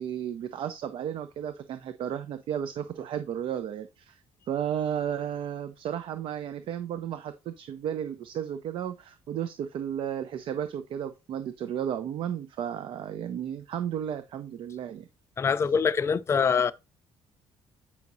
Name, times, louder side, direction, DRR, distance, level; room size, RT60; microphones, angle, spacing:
voice 1, 0.0-4.2 4.5-15.1, right 9 dB, 60° right, 0.7 m, -33 dB
voice 2, 15.4-16.7, left 6 dB, 25° left, 0.5 m, -24 dB
8.5 x 5.8 x 2.6 m
cardioid pair, 145°, 10 cm